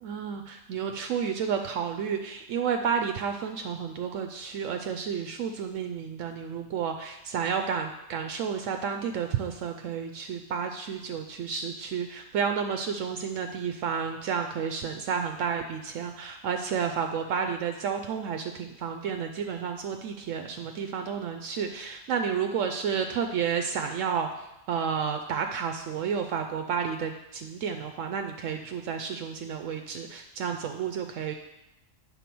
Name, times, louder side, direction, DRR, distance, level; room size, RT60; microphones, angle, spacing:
voice 1, 0.0-31.3, right 7 dB, 75° right, 5 dB, 0.9 m, -31 dB
8.3 x 4.1 x 6.0 m, 0.89 s
omnidirectional pair, 1.3 m